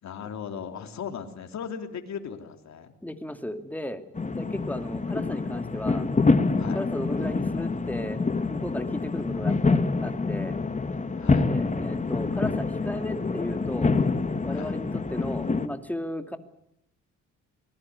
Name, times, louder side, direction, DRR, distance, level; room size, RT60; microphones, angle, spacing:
voice 1, 0.0-2.9 6.6-6.8 11.2-11.5 14.5-14.7, left 7 dB, 65° left, 5 dB, 3.3 m, -37 dB
voice 2, 3.0-4.0 4.4-6.1 6.7-10.6 11.4-13.9 14.4-16.4, left 1 dB, 5° left, 7 dB, 2.6 m, -35 dB
sound 1, 4.1-15.7, left 3 dB, 25° left, 2.0 m, -26 dB
24.0 x 20.0 x 9.6 m, 0.79 s
cardioid pair, 90°, 30 cm